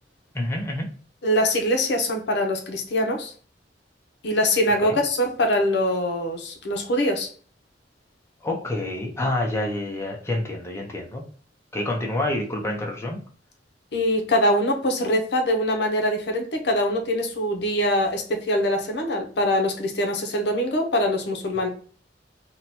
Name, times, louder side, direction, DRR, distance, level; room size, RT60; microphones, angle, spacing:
voice 1, 0.3-0.9 4.8-5.0 8.4-11.2 11.7-13.2, left 1 dB, 15° left, 0 dB, 0.6 m, -27 dB
voice 2, 1.2-3.3 4.2-7.3 13.9-21.7, left 1 dB, 70° left, 3 dB, 0.7 m, -23 dB
2.8 x 2.2 x 4.0 m, 0.43 s
head